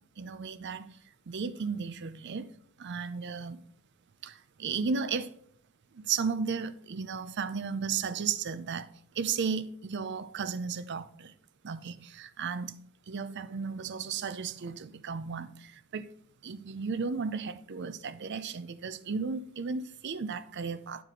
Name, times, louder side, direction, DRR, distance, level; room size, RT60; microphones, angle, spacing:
voice 1, 0.2-0.9 1.3-2.5 2.8-3.6 4.2-4.3 4.6-5.3 6.0-8.9 9.2-11.3 11.6-12.8 13.1-16.1 16.4-21.0, right 5 dB, 55° right, 0.5 m, -34 dB
9.8 x 4.6 x 3.9 m
head